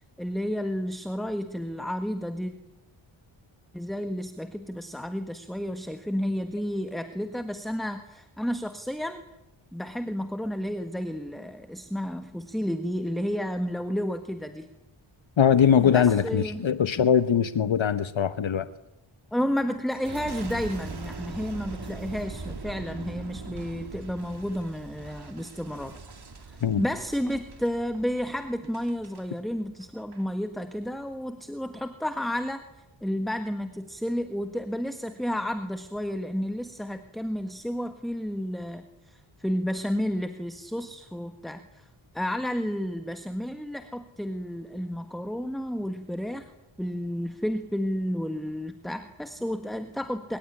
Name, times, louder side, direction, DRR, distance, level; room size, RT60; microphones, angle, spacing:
voice 1, 0.2-2.5 3.7-9.2 9.7-14.7 15.8-16.6 19.3-26.0 26.4-32.6 33.0-41.8 42.1-46.5 46.8-50.4, equal, ahead, 1.5 m, -31 dB
voice 2, 15.4-18.7 26.6-26.8, left 8 dB, 70° left, 1.0 m, -21 dB
Boom, 19.9-29.3 29.8-30.3, right 3 dB, 50° right, 2.9 m, -41 dB
25.0 x 22.5 x 10.0 m
wide cardioid pair, 115°, 48 cm